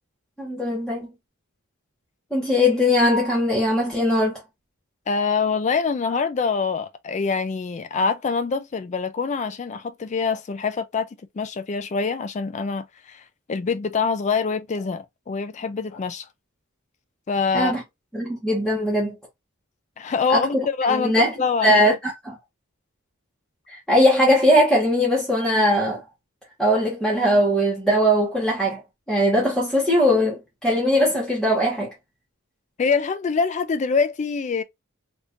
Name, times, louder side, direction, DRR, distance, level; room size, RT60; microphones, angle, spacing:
voice 1, 0.4-1.1 2.3-4.4 17.5-17.8 18.1-19.1 20.3-21.3 21.6-22.3 23.7-26.0 26.6-28.8 29.1-31.9, equal, ahead, 1.1 m, -20 dB
voice 2, 5.1-11.1 11.3-16.3 17.3-17.7 20.0-21.8 32.8-34.6, left 5 dB, 35° left, 0.4 m, -25 dB
3.5 x 2.7 x 2.6 m
head